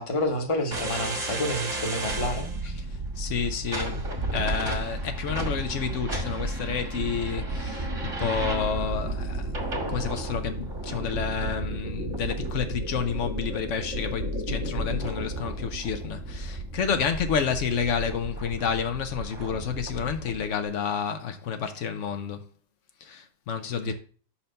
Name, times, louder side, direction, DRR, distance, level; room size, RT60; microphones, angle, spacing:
voice 1, 0.0-2.7 23.8-23.9, left 1 dB, 30° left, 1.0 m, -29 dB
sound 1, 0.7-20.4, right 2 dB, 75° right, 1.8 m, -32 dB
voice 2, 2.9-4.1 4.3-9.5 9.9-22.5 23.0-23.9, left 7 dB, 75° left, 1.0 m, -30 dB
5.6 x 4.3 x 5.2 m
omnidirectional pair, 1.3 m